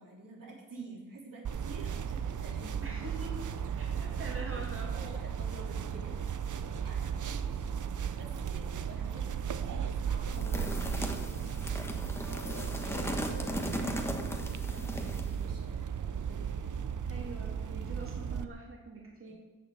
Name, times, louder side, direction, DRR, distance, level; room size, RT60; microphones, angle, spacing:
voice 1, 0.0-3.0 3.7-3.9 4.2-6.1 6.8-7.7 8.2-13.4 13.8-16.8 19.3-19.4, right 2 dB, 85° right, -3 dB, 3.6 m, -50 dB
sound 1, 1.4-18.4, right 7 dB, 65° right, 0.7 m, -35 dB
voice 2, 2.8-3.5 3.8-5.1 17.1-19.3, right 2 dB, 40° right, -3 dB, 2.8 m, -44 dB
Keyboard (musical), 10.3-17.8, left 3 dB, 65° left, 1.6 m, -52 dB
sound 2, 10.3-15.4, equal, 10° left, 1.3 m, -37 dB
14.5 x 6.8 x 8.0 m, 1.2 s
wide cardioid pair, 140°, 32 cm